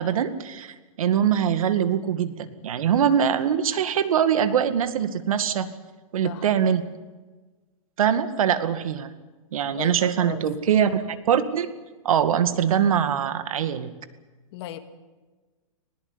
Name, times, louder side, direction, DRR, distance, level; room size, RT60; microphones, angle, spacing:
voice 1, 0.0-5.7 6.1-6.8 8.0-9.1 9.5-11.7 12.0-13.9, right 8 dB, 75° right, 11 dB, 2.1 m, -23 dB
voice 2, 9.6-10.5 14.5-14.8, left 13 dB, 50° left, 8 dB, 2.3 m, -37 dB
20.5 x 19.0 x 9.8 m, 1.3 s
hypercardioid pair, 150°, 18 cm